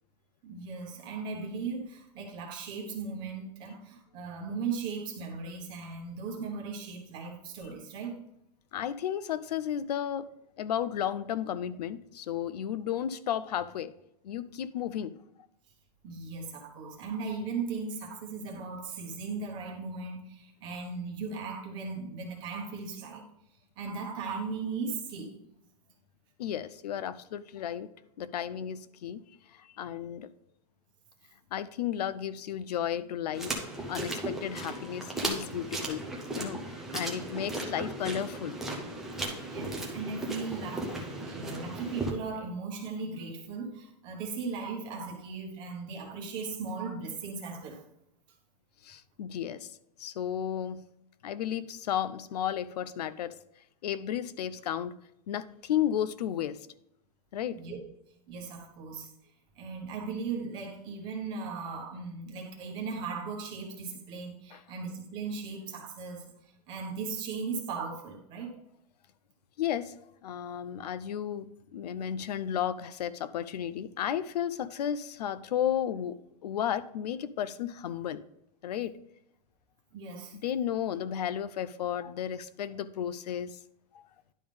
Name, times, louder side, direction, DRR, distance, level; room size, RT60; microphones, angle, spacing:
voice 1, 0.4-8.2 16.0-23.2 23.8-25.4 39.4-47.8 57.5-57.8 58.3-59.1 59.5-66.2 66.7-68.6 79.9-80.4, right 4 dB, 20° right, 0 dB, 1.2 m, -37 dB
voice 2, 8.7-10.3 10.6-13.9 14.2-15.1 26.4-27.9 28.2-29.2 29.5-30.3 31.5-36.0 36.3-36.6 36.9-38.6 40.9-41.0 48.8-49.7 50.0-50.8 51.2-53.4 53.8-54.9 55.3-56.7 57.3-57.6 64.5-64.6 69.6-69.9 70.2-76.2 76.4-78.2 78.6-79.0 80.4-83.6, left 10 dB, 75° left, 15 dB, 0.5 m, -33 dB
sound 1, 33.3-42.1, right 1 dB, ahead, 0.5 m, -36 dB
10.5 x 3.6 x 5.1 m, 0.77 s
supercardioid pair, 180°, 21 cm